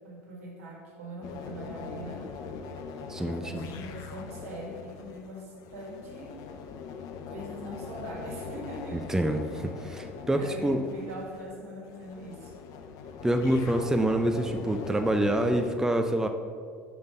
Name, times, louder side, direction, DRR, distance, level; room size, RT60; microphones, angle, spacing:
voice 1, 0.0-2.3 3.2-6.4 7.3-9.3 9.8-12.5, right 1 dB, 75° right, 0 dB, 1.6 m, -42 dB
sound 1, 1.2-15.8, left 5 dB, 55° left, 0.7 m, -41 dB
voice 2, 3.1-3.7 8.9-9.4 9.8-10.8 13.2-16.3, right 1 dB, 5° right, 6 dB, 0.5 m, -26 dB
6.0 x 5.2 x 5.3 m, 2.2 s
hypercardioid pair, 70°, 8 cm